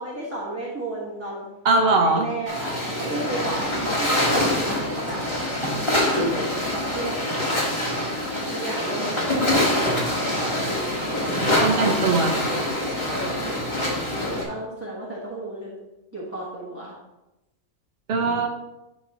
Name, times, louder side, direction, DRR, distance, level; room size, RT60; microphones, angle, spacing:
voice 1, 0.0-1.5 1.8-5.2 6.7-7.2 8.5-9.8 10.1-10.9 11.2-11.8 13.1-13.6 14.2-15.7 16.1-16.9, right 2 dB, 10° right, -7 dB, 1.3 m, -33 dB
voice 2, 1.6-2.3 11.6-12.4 18.1-18.5, right 3 dB, 50° right, 2 dB, 1.2 m, -20 dB
sound 1, 2.5-14.4, left 1 dB, 20° left, 1.8 m, -25 dB
11.0 x 4.4 x 3.0 m, 0.97 s
omnidirectional pair, 1.5 m